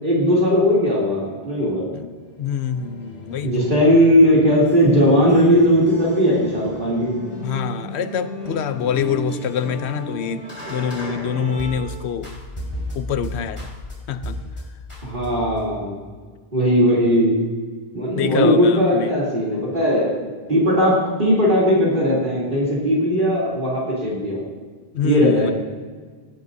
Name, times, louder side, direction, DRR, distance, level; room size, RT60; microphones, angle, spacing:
voice 1, 0.0-1.8 3.4-7.1 15.0-16.0 16.5-17.3 17.9-24.4 25.0-25.5, equal, 50° right, -6 dB, 3.2 m, -18 dB
voice 2, 1.9-3.7 7.4-12.3 13.0-13.7 14.1-14.4 18.1-19.1 24.9-25.5, left 8 dB, 85° left, 12 dB, 0.9 m, -26 dB
sound 1, 2.2-11.9 12.2-13.9 14.2-14.6 14.9-15.7, equal, 25° left, 3.9 m, -35 dB
sound 2, 7.0-12.1, equal, 5° right, 2.6 m, -36 dB
18.0 x 11.0 x 2.7 m, 1.5 s
omnidirectional pair, 1.1 m